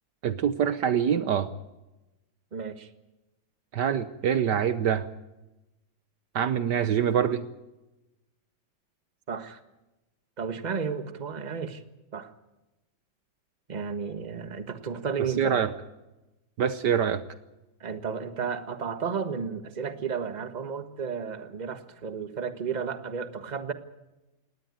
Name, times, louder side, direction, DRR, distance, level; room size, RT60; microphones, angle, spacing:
voice 1, 0.2-1.5 3.7-5.1 6.3-7.5 15.4-15.7 16.6-17.2, right 8 dB, 65° right, 12 dB, 1.4 m, -25 dB
voice 2, 2.5-2.9 9.3-9.6 10.4-11.8 12.1-12.3 13.7-15.6 17.8-23.7, right 6 dB, 25° right, 10 dB, 1.4 m, -33 dB
19.0 x 18.0 x 9.2 m, 1.0 s
omnidirectional pair, 2.1 m